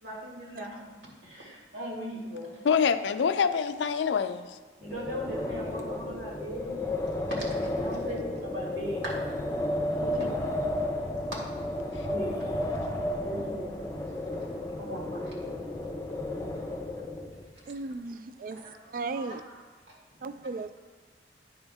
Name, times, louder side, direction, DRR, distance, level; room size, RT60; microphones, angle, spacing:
voice 1, 0.0-2.6 4.8-7.1 7.6-9.1 10.2-10.4 11.3-11.4 12.1-12.3 13.2-13.9 14.8-15.3 18.5-18.7 19.1-19.5, equal, 90° right, 2.3 m, -39 dB
voice 2, 2.6-4.6 10.0-10.2, left 6 dB, 80° left, 0.4 m, -26 dB
Wind, 4.8-17.4, left 1 dB, 20° left, 0.6 m, -33 dB
voice 3, 17.7-18.6 18.9-19.4 20.2-20.8, right 3 dB, 50° right, 0.3 m, -36 dB
9.7 x 5.5 x 3.5 m
head